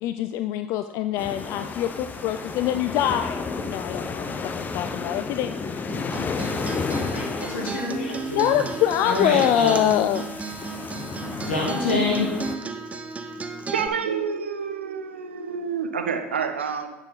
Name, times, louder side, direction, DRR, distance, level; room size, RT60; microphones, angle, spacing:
voice 1, 0.0-3.4 3.7-5.5 8.3-10.3, left 11 dB, 60° left, 9 dB, 0.4 m, -24 dB
sound 1, 1.2-12.6, left 4 dB, 30° left, 0.8 m, -33 dB
Acoustic guitar, 5.9-13.9, right 4 dB, 25° right, 0.9 m, -34 dB
voice 2, 6.9-8.6 9.0-9.8 11.3-12.2, left 2 dB, 85° left, -2 dB, 2.5 m, -27 dB
voice 3, 13.7-16.9, right 6 dB, 90° right, 7 dB, 0.7 m, -28 dB
10.5 x 6.6 x 4.0 m, 1.0 s
hypercardioid pair, 70°, 6 cm